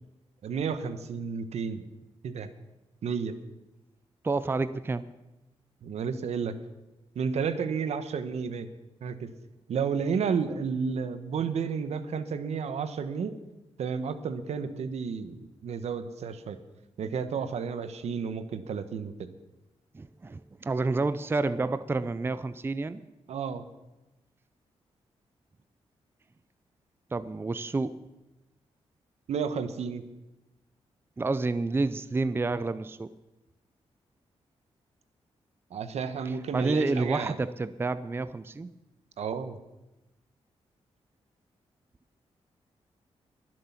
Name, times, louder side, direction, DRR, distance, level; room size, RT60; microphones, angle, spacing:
voice 1, 0.4-1.8 2.2-2.5 3.0-3.4 5.8-6.5 7.1-8.7 9.0-9.3 9.7-13.3 13.8-16.6 17.0-19.1 23.3-23.7 29.3-30.0 35.7-37.4 39.2-39.6, right 6 dB, 75° right, 11 dB, 1.1 m, -31 dB
voice 2, 4.2-5.0 19.9-23.0 27.1-27.9 31.2-33.1 36.3-38.7, right 3 dB, 20° right, 14 dB, 0.5 m, -29 dB
22.5 x 7.6 x 5.8 m, 1.0 s
cardioid pair, 100°, 11 cm